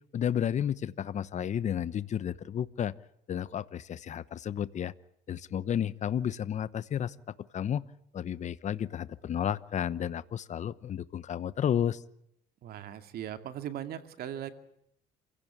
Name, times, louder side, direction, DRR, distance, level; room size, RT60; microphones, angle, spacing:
voice 1, 0.1-2.9 3.3-4.9 5.3-7.1 7.5-7.8 8.1-12.0, left 9 dB, 45° left, 16 dB, 1.0 m, -32 dB
voice 2, 12.6-14.5, right 10 dB, 65° right, 8 dB, 2.4 m, -39 dB
28.5 x 16.5 x 8.6 m, 0.75 s
cardioid pair, 110°, 17 cm